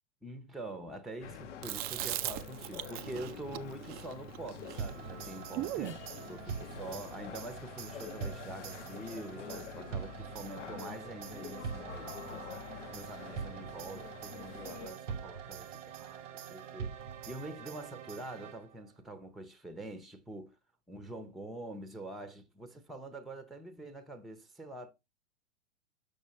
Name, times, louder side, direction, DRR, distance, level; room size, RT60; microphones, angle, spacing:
voice 1, 0.2-6.0 6.3-12.4 12.9-20.5 20.9-24.9, right 1 dB, ahead, 0.7 m, -45 dB
sound 1, 1.2-14.9, left 7 dB, 75° left, 0.9 m, -47 dB
Chewing mastication, 1.6-6.0, right 15 dB, 25° right, 0.4 m, -39 dB
sound 2, 4.8-18.9, right 7 dB, 80° right, 1.0 m, -44 dB
6.7 x 6.3 x 3.1 m
hypercardioid pair, 105°, 37 cm